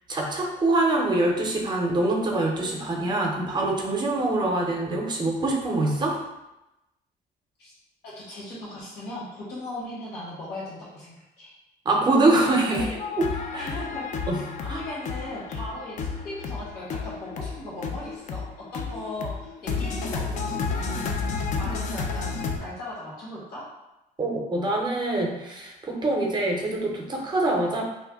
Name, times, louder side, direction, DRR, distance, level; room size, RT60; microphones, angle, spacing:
voice 1, 0.1-6.2 11.8-12.9 13.2-13.3 13.5-13.7 14.3-14.4 14.7-14.8 24.2-27.8, right 2 dB, 25° right, 0 dB, 0.6 m, -24 dB
voice 2, 8.0-11.5 12.8-12.9 13.5-14.1 14.6-21.3 21.6-23.7, left 1 dB, 70° left, -7 dB, 1.2 m, -38 dB
sound 1, 12.5-22.6, left 4 dB, 45° left, 0.4 m, -31 dB
2.6 x 2.0 x 3.5 m, 0.95 s
cardioid pair, 110°, 17 cm